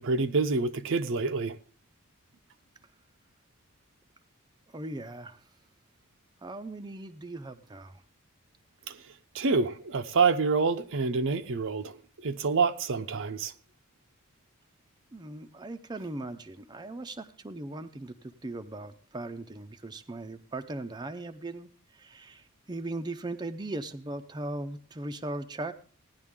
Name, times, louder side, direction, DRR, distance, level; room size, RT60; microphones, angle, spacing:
voice 1, 0.0-1.6 8.9-9.0 9.3-12.0 12.2-13.5, right 4 dB, 65° right, 0.7 m, -27 dB
voice 2, 4.7-5.4 6.4-8.0 15.1-25.7, right 2 dB, 20° right, 0.6 m, -39 dB
16.5 x 10.5 x 3.7 m
head